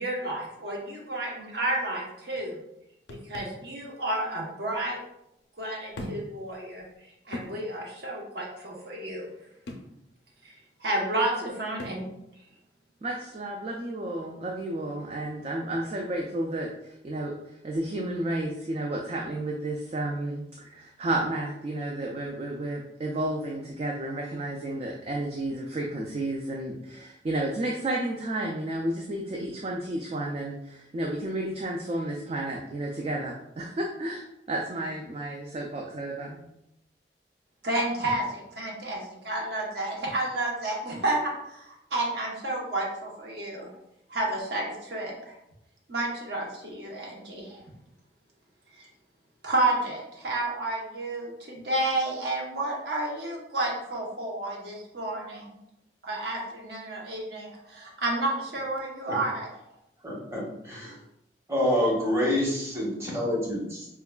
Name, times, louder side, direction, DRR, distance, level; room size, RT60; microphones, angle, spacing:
voice 1, 0.0-2.6 3.1-5.0 5.6-6.8 7.3-9.3 10.4-10.5 10.8-12.0 37.6-43.7 44.1-45.3 45.9-47.6 48.8-48.9 49.4-55.5 56.0-59.5, right 2 dB, 70° right, -1 dB, 0.8 m, -31 dB
sound 1, 3.1-3.6 4.7-4.8 5.9-6.4 6.8-6.9 7.3-7.6 9.7-9.9 11.8-12.1, left 1 dB, 80° left, 0.5 m, -39 dB
voice 2, 13.0-36.5, right 1 dB, 35° right, 0 dB, 0.3 m, -32 dB
voice 3, 60.0-61.0 61.5-63.9, left 1 dB, 15° right, -4 dB, 0.8 m, -27 dB
4.5 x 2.3 x 2.2 m, 0.82 s
head